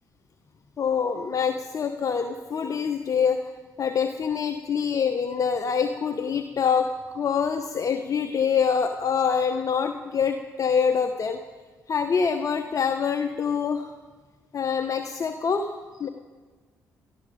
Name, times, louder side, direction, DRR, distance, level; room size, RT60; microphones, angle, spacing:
voice 1, 0.8-3.5 3.8-6.9 7.1-11.4 11.9-13.9 14.5-15.7 16.0-16.1, left 6 dB, 45° left, 6 dB, 1.2 m, -25 dB
18.5 x 14.0 x 5.2 m, 1.4 s
hypercardioid pair, 50°, 8 cm